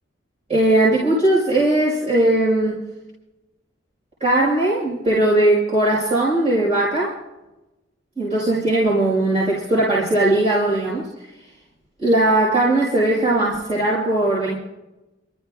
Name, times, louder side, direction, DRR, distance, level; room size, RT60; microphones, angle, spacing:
voice 1, 0.5-2.8 4.2-7.2 8.2-11.0 12.0-14.5, right 1 dB, 35° right, -8 dB, 5.5 m, -19 dB
29.0 x 14.0 x 2.5 m, 1.0 s
head